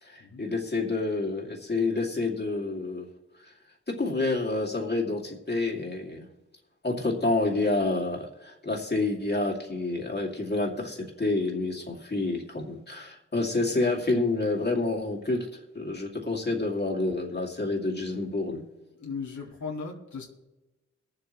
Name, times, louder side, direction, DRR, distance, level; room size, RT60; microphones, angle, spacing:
voice 1, 0.0-3.1 3.4-3.5 3.9-6.3 6.8-15.5 15.7-18.7, left 2 dB, 35° left, -1 dB, 2.4 m, -28 dB
voice 2, 19.0-20.2, left 5 dB, 75° left, -2 dB, 2.0 m, -37 dB
21.5 x 7.8 x 3.1 m, 1.0 s
cardioid pair, 75°, 30 cm